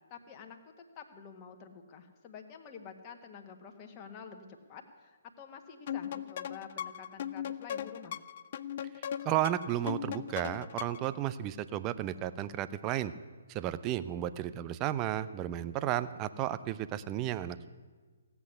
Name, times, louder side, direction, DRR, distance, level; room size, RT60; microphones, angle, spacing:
voice 1, 0.0-8.2, left 6 dB, 25° left, 3 dB, 1.6 m, -49 dB
sound 1, 5.9-11.2, left 10 dB, 45° left, 0.5 m, -39 dB
voice 2, 9.2-13.1 13.5-17.7, right 12 dB, 25° right, 14 dB, 0.6 m, -33 dB
16.5 x 8.2 x 9.7 m, 1.4 s
figure-of-eight pair, 135°, 0 cm